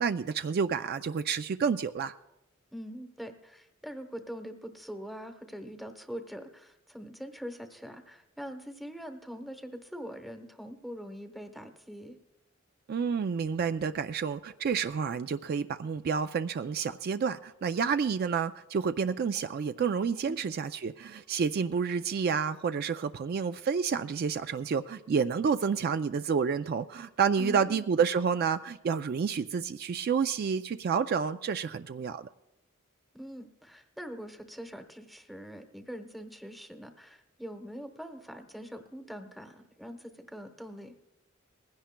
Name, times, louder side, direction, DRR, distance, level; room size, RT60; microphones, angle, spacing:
voice 1, 0.0-2.1 12.9-32.3, right 6 dB, 50° right, 10 dB, 0.3 m, -29 dB
voice 2, 2.7-12.2 20.3-20.5 27.4-27.8 33.1-40.9, equal, ahead, 6 dB, 0.9 m, -43 dB
20.0 x 16.0 x 2.2 m, 0.90 s
head